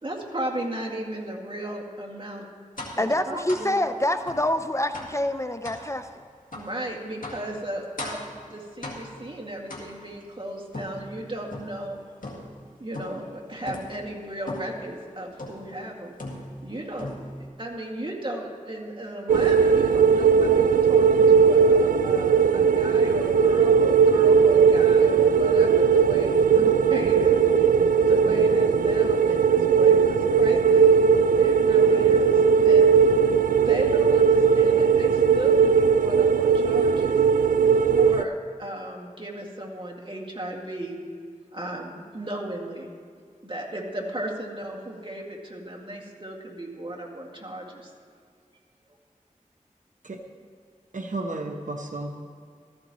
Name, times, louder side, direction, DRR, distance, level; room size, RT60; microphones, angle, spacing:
voice 1, 0.0-2.5 3.0-3.8 6.5-12.0 12.8-16.1 16.6-17.1 17.6-27.7 28.0-30.9 31.4-33.1 33.7-37.2 37.8-41.0 41.5-42.9 43.4-47.9, right 1 dB, 35° right, -1 dB, 2.1 m, -35 dB
sound 1, 2.8-3.1 3.5-3.7 4.3-4.5 4.9-5.2 5.6-5.9 6.5-6.7 7.2-7.5 8.0-8.3 8.8-9.2 9.7-10.2 10.7-11.8 12.2-12.6 12.9-13.3 13.7-14.0 14.5-14.8 15.4-15.7 16.2-16.7 17.0-17.5, left 1 dB, 85° left, 2.0 m, -38 dB
voice 2, 3.0-6.1, left 1 dB, 20° left, 9 dB, 0.5 m, -26 dB
sound 2, 19.3-38.2, right 6 dB, 90° right, 0.4 m, -18 dB
voice 3, 50.9-52.3, right 2 dB, 70° right, 3 dB, 1.0 m, -33 dB
15.0 x 14.0 x 3.1 m, 2.2 s
wide cardioid pair, 45°, 14 cm